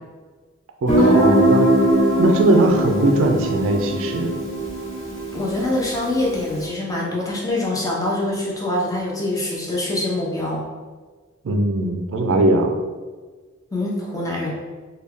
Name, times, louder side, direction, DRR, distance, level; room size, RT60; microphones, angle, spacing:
voice 1, 0.8-1.7 2.2-4.3 11.4-12.8, right 1 dB, 65° right, 4 dB, 0.4 m, -20 dB
Guitar, 0.9-6.4, right 1 dB, 40° left, 1.3 m, -20 dB
voice 2, 5.3-10.6 13.7-14.5, left 1 dB, 15° left, -4 dB, 0.7 m, -24 dB
3.3 x 2.3 x 3.4 m, 1.4 s
head